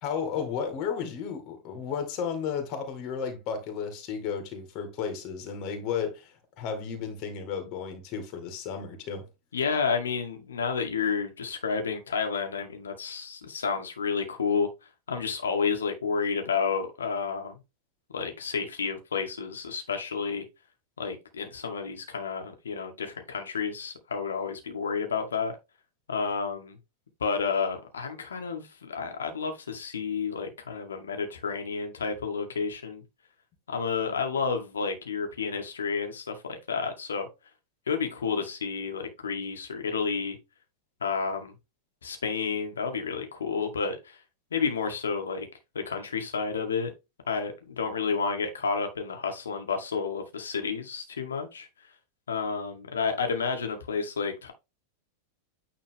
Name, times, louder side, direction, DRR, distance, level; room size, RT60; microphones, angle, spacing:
voice 1, 0.0-9.3, left 6 dB, 40° left, 2.4 m, -33 dB
voice 2, 9.5-14.7 15.1-17.6 18.1-20.4 21.0-25.5 26.1-26.8 27.2-33.0 33.7-37.3 37.9-40.4 41.0-41.5 42.0-44.0 44.5-45.5 45.9-46.9 47.3-51.7 52.3-54.5, left 5 dB, 70° left, 1.9 m, -30 dB
9.4 x 3.8 x 3.6 m
figure-of-eight pair, 90°, 0 cm